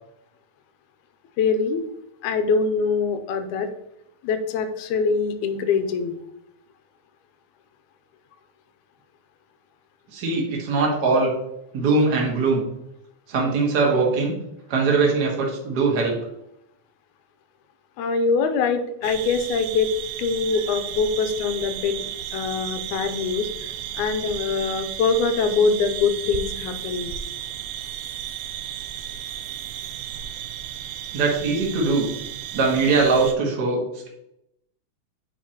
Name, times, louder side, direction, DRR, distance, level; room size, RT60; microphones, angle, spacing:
voice 1, 1.4-1.8 2.2-3.7 4.2-6.2 18.0-19.9 20.2-27.1, left 5 dB, 85° left, 8 dB, 2.0 m, -23 dB
voice 2, 10.1-11.3 11.7-12.6 13.3-14.4 14.7-16.2 31.1-32.1 32.5-34.1, right 3 dB, 40° right, -1 dB, 1.5 m, -21 dB
sound 1, 19.0-33.3, right 10 dB, 80° right, 1.7 m, -34 dB
8.3 x 5.0 x 2.9 m, 0.82 s
omnidirectional pair, 3.5 m